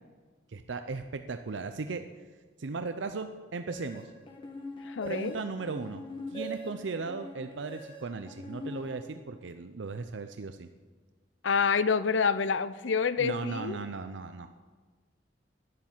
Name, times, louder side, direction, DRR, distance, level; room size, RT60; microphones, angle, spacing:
voice 1, 0.5-2.1 2.6-4.1 5.0-6.0 6.3-10.7 13.2-14.5, right 4 dB, 80° right, 8 dB, 0.6 m, -37 dB
sound 1, 3.7-9.5, left 1 dB, 25° left, 1.5 m, -43 dB
voice 2, 4.8-5.4 11.4-13.8, left 5 dB, 90° left, 14 dB, 0.6 m, -27 dB
12.0 x 11.0 x 7.3 m, 1.4 s
head